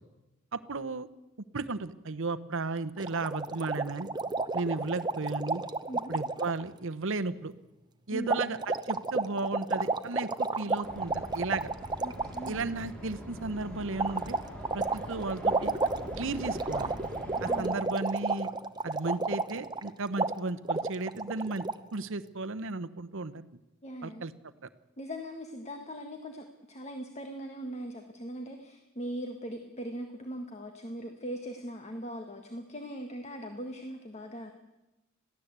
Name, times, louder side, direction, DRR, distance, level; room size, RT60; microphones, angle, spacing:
voice 1, 0.5-1.1 1.5-4.1 4.5-5.6 6.1-7.5 8.1-11.7 12.5-14.4 14.7-15.7 16.2-16.9 17.4-18.5 18.8-21.6 21.9-23.5 24.0-24.3, right 3 dB, 65° right, 11 dB, 0.9 m, -34 dB
sound 1, 3.0-6.6 8.3-12.6 14.0-19.9 20.2-20.3 20.7-21.7, right 3 dB, 20° right, 0.8 m, -31 dB
voice 2, 8.1-8.5 12.0-12.7 17.5-17.9 23.8-24.2 25.0-34.5, equal, 30° left, 4 dB, 1.7 m, -40 dB
sound 2, 10.8-17.6, equal, 5° left, 4.0 m, -43 dB
22.0 x 15.0 x 8.2 m, 1.0 s
head